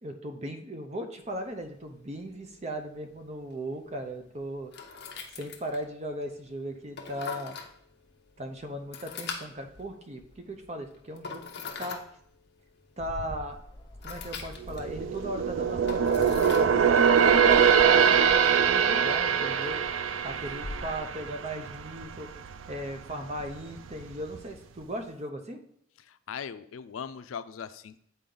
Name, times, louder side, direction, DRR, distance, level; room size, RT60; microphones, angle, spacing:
voice 1, 0.0-4.7 5.3-7.6 8.4-11.4 11.8-12.0 13.0-13.6 14.0-19.8 20.2-22.3 22.7-25.6, right 1 dB, 35° right, 6 dB, 0.7 m, -37 dB
sound 1, 1.2-18.7, left 5 dB, 55° left, 0.8 m, -45 dB
Bird, 13.0-21.0, left 1 dB, 20° left, 0.6 m, -44 dB
sound 2, 14.6-22.2 22.5-22.8 23.3-24.0 24.4-24.5, right 7 dB, 75° right, 0.4 m, -23 dB
voice 2, 26.1-28.0, left 7 dB, 90° left, 13 dB, 0.4 m, -39 dB
8.4 x 4.1 x 3.9 m, 0.67 s
head